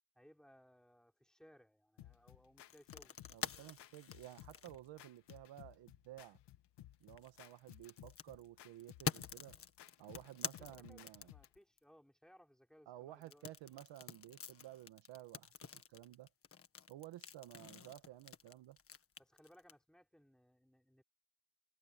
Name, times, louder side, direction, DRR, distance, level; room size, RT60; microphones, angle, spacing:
voice 1, 0.1-3.2 10.6-13.8 19.2-21.0, equal, ahead, 5.4 m, -65 dB
sound 1, 2.0-11.6, left 13 dB, 60° left, 2.2 m, -59 dB
sound 2, 2.7-5.6 7.0-11.8 13.2-19.7, left 7 dB, 30° left, 1.6 m, -47 dB
voice 2, 3.3-6.4 7.0-9.6 10.0-11.3 12.9-16.3 16.9-18.8, right 14 dB, 65° right, 1.6 m, -54 dB
cardioid pair, 140°, 46 cm